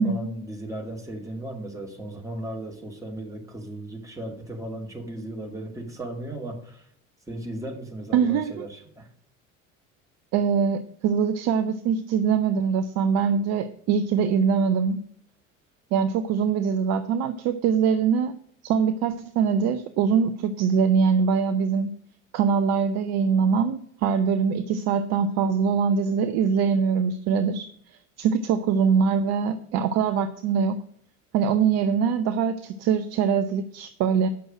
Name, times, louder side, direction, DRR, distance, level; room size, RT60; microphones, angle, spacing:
voice 1, 0.0-6.9 7.3-9.1, right 1 dB, 10° right, 2.3 m, -36 dB
voice 2, 8.1-8.7 10.3-15.0 15.9-18.4 18.6-21.9 22.3-27.7 28.2-30.8 31.3-34.3, right 6 dB, 40° right, 0.7 m, -23 dB
8.1 x 6.2 x 7.4 m
figure-of-eight pair, 65°, 40 cm